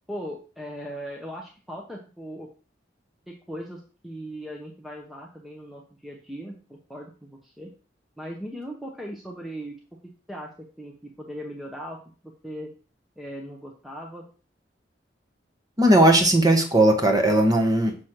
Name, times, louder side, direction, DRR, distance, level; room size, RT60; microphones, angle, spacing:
voice 1, 0.1-2.5 3.3-7.7 8.2-9.8 10.3-12.7 13.2-14.3, equal, ahead, 0 dB, 0.6 m, -38 dB
voice 2, 15.8-18.0, right 1 dB, 20° right, 4 dB, 1.0 m, -18 dB
6.3 x 3.1 x 5.8 m, 0.38 s
head